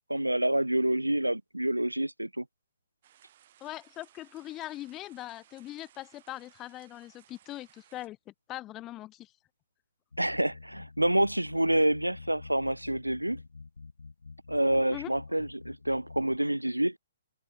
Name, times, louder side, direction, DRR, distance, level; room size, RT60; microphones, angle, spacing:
voice 1, 0.1-2.4 10.2-13.4 14.5-17.0, right 1 dB, 85° right, 0.4 m, -27 dB
sound 1, 3.0-8.1, right 12 dB, 45° right, 7.1 m, -61 dB
voice 2, 3.6-9.3 14.9-15.1, left 15 dB, 20° left, 0.8 m, -41 dB
sound 2, 10.1-16.4, left 4 dB, 70° left, 1.8 m, -48 dB
figure-of-eight pair, 125°, 0 cm